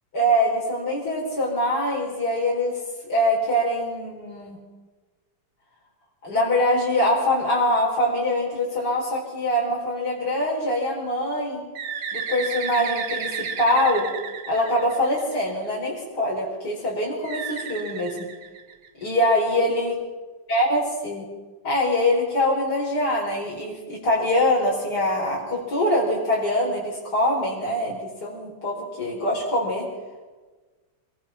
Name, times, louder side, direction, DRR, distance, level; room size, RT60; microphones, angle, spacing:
voice 1, 0.1-2.8 3.1-4.6 6.2-11.7 12.1-14.1 14.5-18.3 19.0-20.0 20.5-21.3 21.6-29.9, left 1 dB, 55° left, -4 dB, 5.2 m, -23 dB
Bird, 11.7-15.5 17.2-19.0, right 6 dB, 85° right, 2.8 m, -32 dB
26.5 x 23.5 x 5.9 m, 1.3 s
omnidirectional pair, 2.1 m